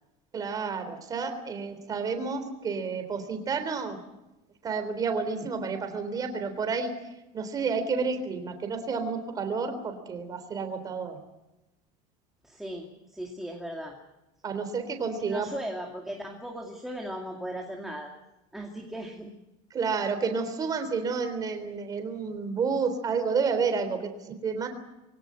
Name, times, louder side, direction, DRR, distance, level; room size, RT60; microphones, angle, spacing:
voice 1, 0.3-4.0 4.6-11.2 14.4-15.5 19.7-24.7, right 5 dB, 20° right, 7 dB, 3.6 m, -30 dB
voice 2, 12.4-14.0 15.2-18.1 18.5-19.3, right 1 dB, ahead, 1 dB, 2.3 m, -37 dB
23.5 x 17.5 x 8.8 m, 0.96 s
cardioid pair, 165°, 17 cm